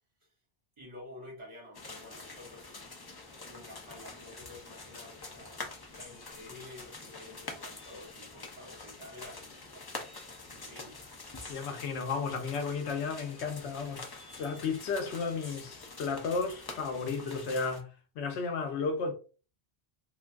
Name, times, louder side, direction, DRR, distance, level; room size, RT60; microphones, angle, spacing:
voice 1, 0.8-2.8 3.5-9.9 10.5-11.0, left 2 dB, 30° right, 1.4 m, -50 dB
sound 1, 1.7-17.8, left 3 dB, 40° left, 0.3 m, -46 dB
voice 2, 11.5-14.1 14.4-17.9 18.2-19.1, left 4 dB, 90° left, 0.9 m, -33 dB
3.3 x 2.6 x 2.2 m
omnidirectional pair, 1.1 m